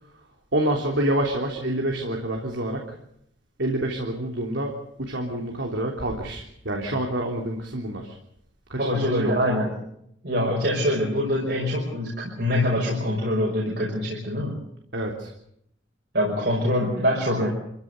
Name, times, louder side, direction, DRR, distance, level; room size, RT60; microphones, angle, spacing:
voice 1, 0.5-3.0 3.6-8.2 8.7-9.6 14.9-15.3, right 1 dB, 75° right, 1 dB, 3.4 m, -27 dB
voice 2, 8.8-9.7 10.2-14.6 16.1-17.5, left 1 dB, 60° right, -2 dB, 5.7 m, -24 dB
27.5 x 15.5 x 8.2 m, 0.74 s
head